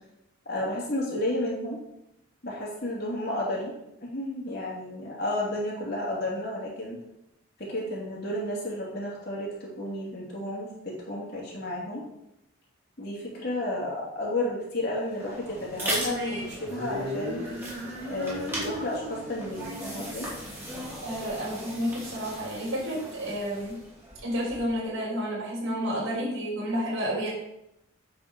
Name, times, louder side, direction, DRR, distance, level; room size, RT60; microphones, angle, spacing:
voice 1, 0.4-1.8 2.4-3.7 4.0-7.0 7.6-12.0 13.0-17.4 18.0-20.3, left 1 dB, 50° left, -5 dB, 2.9 m, -32 dB
sound 1, 15.0-24.8, right 1 dB, 10° right, 2.9 m, -38 dB
sound 2, 16.0-21.2, equal, 55° right, 2.7 m, -38 dB
voice 2, 21.0-23.8 24.2-27.3, equal, 75° right, -5 dB, 4.1 m, -30 dB
9.1 x 5.1 x 6.3 m, 0.84 s
head